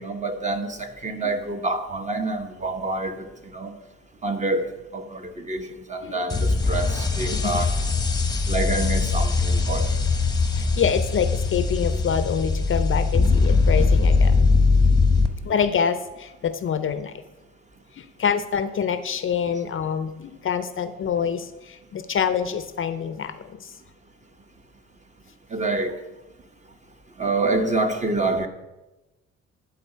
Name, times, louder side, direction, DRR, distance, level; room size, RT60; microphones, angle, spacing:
voice 1, 0.0-3.7 4.2-4.7 4.9-7.7 8.5-10.1 25.5-26.0 27.2-28.5, right 2 dB, 25° right, 6 dB, 0.9 m, -27 dB
sound 1, 6.3-15.3, left 4 dB, 15° left, 0.9 m, -21 dB
voice 2, 10.5-14.5 15.5-17.1 18.0-23.7, left 7 dB, 45° left, 11 dB, 0.5 m, -26 dB
11.0 x 4.0 x 5.4 m, 1.0 s
cardioid pair, 90°, 30 cm